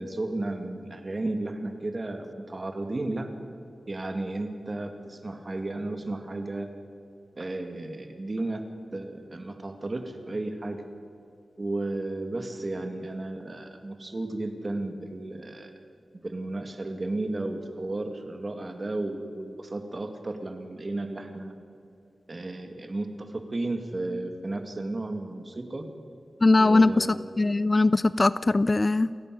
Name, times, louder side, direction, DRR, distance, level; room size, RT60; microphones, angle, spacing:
voice 1, 0.0-3.3 3.9-6.7 7.4-8.6 8.9-10.8 11.6-15.7 16.2-21.5 22.3-25.9 26.6-27.2, right 2 dB, 35° right, 6 dB, 2.2 m, -33 dB
voice 2, 26.4-29.1, left 2 dB, 30° left, 17 dB, 0.4 m, -21 dB
29.0 x 11.0 x 9.3 m, 2.5 s
wide cardioid pair, 105°, 0 cm